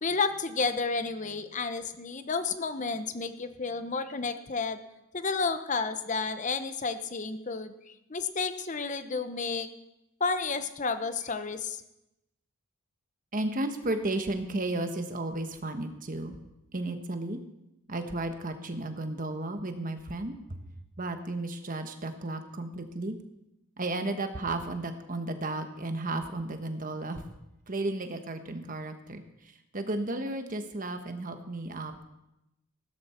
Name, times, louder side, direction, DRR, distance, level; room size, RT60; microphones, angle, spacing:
voice 1, 0.0-4.8 5.1-7.7 8.1-9.7 10.2-11.8, left 4 dB, 35° left, 10 dB, 0.8 m, -31 dB
voice 2, 13.3-16.4 16.7-17.4 17.9-20.6 21.0-23.2 23.8-27.2 27.7-29.2 29.7-32.0, right 2 dB, 40° right, 7 dB, 1.2 m, -33 dB
15.5 x 13.0 x 4.4 m, 0.90 s
head